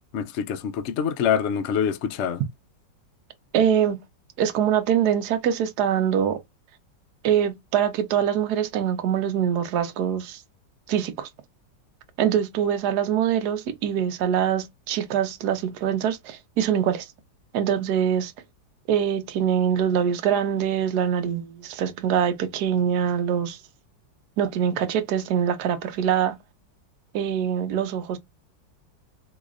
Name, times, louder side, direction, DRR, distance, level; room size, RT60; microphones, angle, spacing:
voice 1, 0.1-2.4, left 8 dB, 80° left, 0.6 m, -25 dB
voice 2, 3.5-4.0 4.4-6.4 7.2-10.4 10.9-11.3 12.2-17.1 17.5-18.3 18.9-23.6 24.4-26.4 27.1-28.2, right 9 dB, 65° right, 1.3 m, -24 dB
3.9 x 2.8 x 2.4 m
omnidirectional pair, 2.0 m